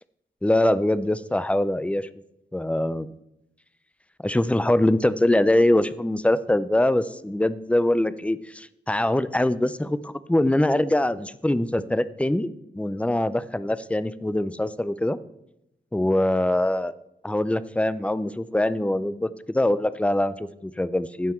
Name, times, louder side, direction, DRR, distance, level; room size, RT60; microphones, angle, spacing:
voice 1, 0.4-2.1 2.5-3.1 4.2-12.5 12.8-15.2 15.9-16.9 17.2-21.3, left 1 dB, 5° left, 15 dB, 0.4 m, -23 dB
15.5 x 5.7 x 4.4 m, 0.84 s
wide cardioid pair, 105°, 20 cm